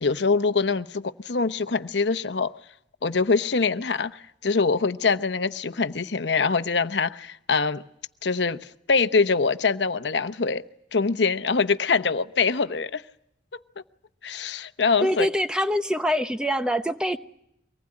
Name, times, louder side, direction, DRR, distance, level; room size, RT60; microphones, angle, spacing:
voice 1, 0.0-2.5 3.0-7.8 8.2-10.6 10.9-13.0 14.2-15.3, left 4 dB, 80° left, 0.9 m, -24 dB
voice 2, 15.0-17.2, equal, 5° right, 0.9 m, -24 dB
24.0 x 19.5 x 9.7 m
head